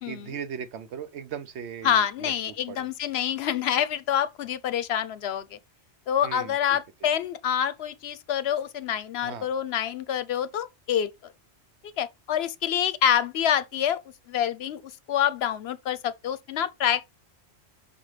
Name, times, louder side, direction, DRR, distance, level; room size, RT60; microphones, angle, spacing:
voice 1, 0.0-2.9 6.2-6.8 9.2-9.5, right 7 dB, 75° right, 1.0 m, -38 dB
voice 2, 1.8-5.6 6.1-11.3 12.0-14.0 14.3-14.8 15.1-17.1, left 9 dB, 70° left, 0.8 m, -27 dB
5.6 x 5.1 x 3.2 m
omnidirectional pair, 1.2 m